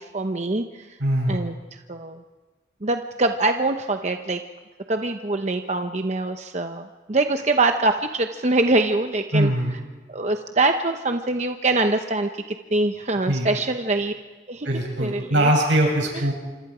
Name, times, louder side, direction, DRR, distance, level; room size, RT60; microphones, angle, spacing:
voice 1, 0.0-1.0 1.3-2.2 2.8-4.4 4.9-9.5 10.1-14.1 14.5-14.7 15.0-15.5 16.1-16.2, right 2 dB, 40° right, 6 dB, 0.8 m, -24 dB
voice 2, 1.0-1.4 9.3-9.7 13.3-13.5 14.6-16.3, right 1 dB, 85° right, 0 dB, 7.7 m, -21 dB
26.5 x 26.5 x 5.0 m, 1.3 s
head